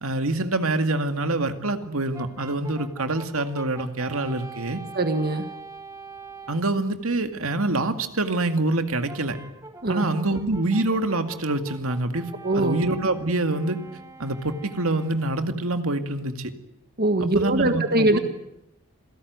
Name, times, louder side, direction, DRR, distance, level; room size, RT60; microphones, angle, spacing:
voice 1, 0.0-4.8 6.5-9.4 9.9-13.8 14.2-16.5 17.2-18.2, right 2 dB, 70° right, 8 dB, 2.1 m, -26 dB
Brass instrument, 2.1-6.7 9.1-15.4, right 4 dB, 15° right, 1.6 m, -44 dB
voice 2, 4.9-5.5 9.8-10.1 12.4-12.8 17.0-18.2, right 2 dB, 45° right, 7 dB, 1.6 m, -22 dB
27.5 x 17.5 x 9.4 m, 0.84 s
head